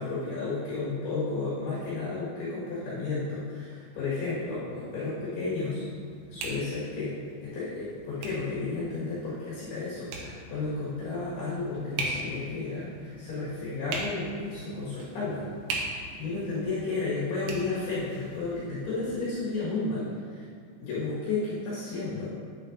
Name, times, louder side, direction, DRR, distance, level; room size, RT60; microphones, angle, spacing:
voice 1, 0.0-5.8 6.3-15.5 16.0-20.4 20.8-22.3, left 3 dB, 65° left, -9 dB, 3.4 m, -32 dB
sound 1, 3.9-19.1, right 3 dB, 85° right, 1.9 m, -41 dB
9.7 x 7.5 x 2.6 m, 2.2 s
omnidirectional pair, 5.3 m